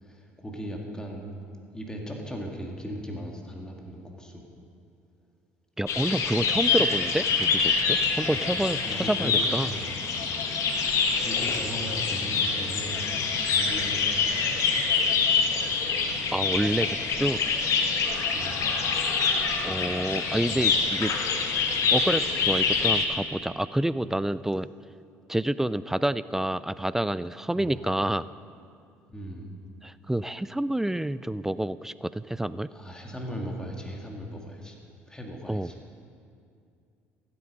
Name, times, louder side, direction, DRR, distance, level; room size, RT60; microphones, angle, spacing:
voice 1, 0.0-1.3 1.7-4.4 6.8-6.9 8.7-9.4 9.7-9.9 11.2-14.6 18.3-18.8 20.3-20.6 27.5-27.9 29.1-29.5 32.7-34.8 35.1-35.8, equal, 10° left, 0 dB, 2.3 m, -38 dB
voice 2, 5.8-9.7 16.3-17.4 19.6-21.1 21.9-24.7 25.3-28.2 29.8-32.7 35.5-35.7, right 1 dB, 5° right, 16 dB, 0.3 m, -28 dB
sound 1, 5.9-23.1, left 5 dB, 55° left, 1.3 m, -26 dB
14.5 x 8.5 x 5.5 m, 2.4 s
hypercardioid pair, 60°, 6 cm